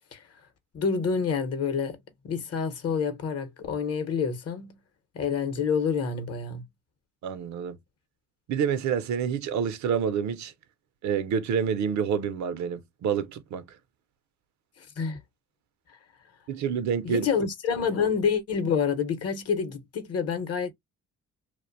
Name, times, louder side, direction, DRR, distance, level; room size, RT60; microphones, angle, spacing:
voice 1, 0.7-2.0 2.2-4.8 5.1-6.6 14.8-15.2 17.0-20.7, left 6 dB, 55° left, 0.7 m, -28 dB
voice 2, 7.2-7.8 8.5-10.5 11.0-13.6 16.5-17.3 17.8-17.9, right 7 dB, 70° right, 0.5 m, -28 dB
2.4 x 2.1 x 2.4 m
cardioid pair, 90°, 30 cm